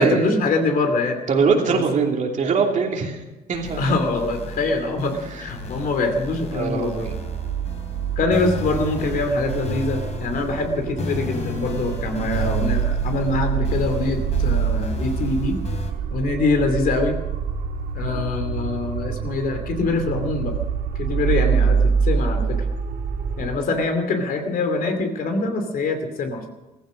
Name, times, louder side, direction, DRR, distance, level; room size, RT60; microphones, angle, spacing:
voice 1, 0.0-1.2 1.7-1.8 3.8-7.0 8.2-15.6 16.1-17.2 17.9-20.5 21.0-21.8 22.0-22.6 23.4-26.5, left 3 dB, 55° left, 6 dB, 2.7 m, -24 dB
voice 2, 1.3-3.2 3.5-3.9 6.5-7.1, right 5 dB, 45° right, 1 dB, 3.0 m, -21 dB
sound 1, 3.5-15.9, left 3 dB, 40° left, 3.4 m, -33 dB
sound 2, 7.1-23.5, right 6 dB, 85° right, 2.5 m, -25 dB
15.0 x 15.0 x 6.3 m, 1.1 s
cardioid pair, 110°, 17 cm